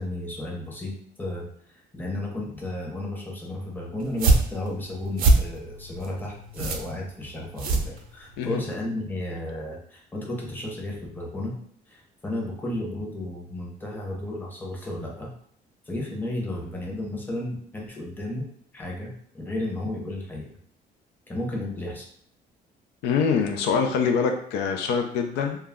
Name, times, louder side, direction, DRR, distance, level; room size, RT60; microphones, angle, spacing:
voice 1, 0.0-11.6 11.9-15.3 15.9-18.5 18.7-20.6 21.3-22.1, left 1 dB, 10° left, -2 dB, 0.7 m, -33 dB
sound 1, 4.0-8.5, right 2 dB, 60° right, 0.5 m, -24 dB
voice 2, 23.0-25.7, left 6 dB, 85° left, 4 dB, 0.4 m, -24 dB
2.2 x 2.0 x 3.5 m, 0.62 s
cardioid pair, 110°, 17 cm